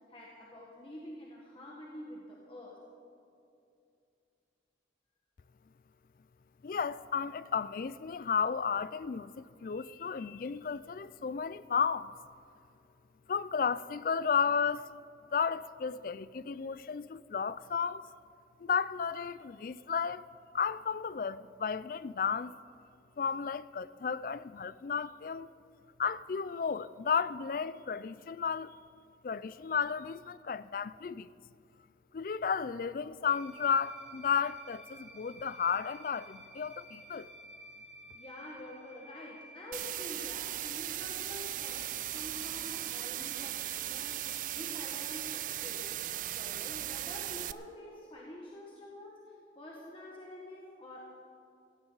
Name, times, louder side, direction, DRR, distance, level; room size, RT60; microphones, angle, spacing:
voice 1, 0.1-2.8 38.1-51.1, left 1 dB, 30° left, 1.6 m, -48 dB
voice 2, 6.6-12.2 13.3-14.9 15.3-18.1 18.6-20.3 20.5-22.5 23.2-25.5 26.0-28.7 29.2-31.3 32.1-37.3, left 6 dB, 50° left, 0.3 m, -33 dB
sound 1, 33.3-46.9, equal, 80° right, 4.3 m, -55 dB
sound 2, 39.7-47.5, right 13 dB, 45° right, 0.3 m, -37 dB
16.5 x 15.5 x 4.0 m
head